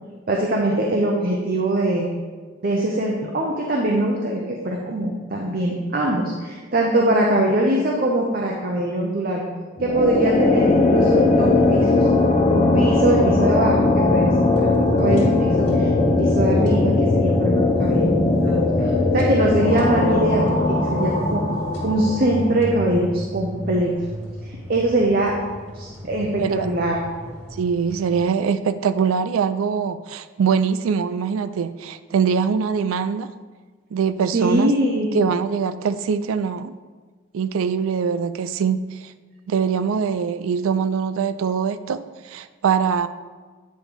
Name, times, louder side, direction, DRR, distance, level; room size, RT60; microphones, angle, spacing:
voice 1, 0.3-2.1 2.6-9.4 9.8-12.1 12.5-15.9 16.2-18.1 18.4-23.9 24.7-25.3 25.7-27.0 34.3-35.1, right 1 dB, 45° right, -1 dB, 0.6 m, -22 dB
sound 1, 9.8-22.9, left 2 dB, 30° left, 0.5 m, -19 dB
sound 2, 13.1-28.2, equal, 60° left, 1.9 m, -37 dB
voice 2, 27.6-33.3 33.9-34.7 35.1-36.8 37.3-39.1 39.5-43.1, right 6 dB, 85° right, 12 dB, 0.3 m, -23 dB
9.1 x 3.1 x 5.1 m, 1.4 s
head